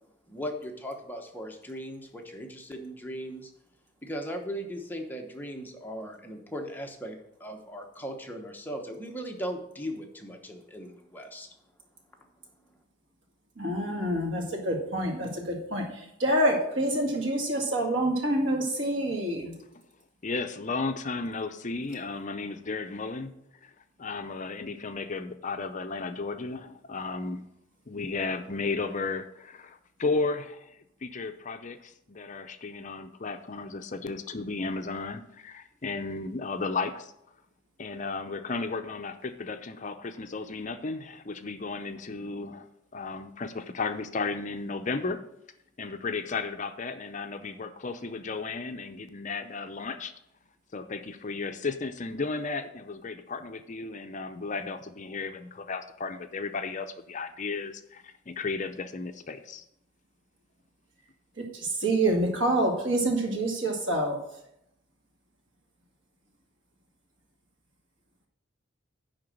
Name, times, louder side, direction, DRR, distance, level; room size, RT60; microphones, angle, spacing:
voice 1, 0.3-3.5 4.0-11.5, equal, 10° left, 2 dB, 1.0 m, -38 dB
voice 2, 13.6-15.9 16.2-19.5 61.5-64.2, right 1 dB, 80° right, 1 dB, 2.2 m, -27 dB
voice 3, 20.2-23.3 23.6-23.7 24.0-27.4 27.9-37.1 37.8-42.7 42.9-45.2 45.8-50.1 50.7-59.6, left 3 dB, 40° left, 8 dB, 0.6 m, -34 dB
10.0 x 3.9 x 7.4 m, 0.79 s
head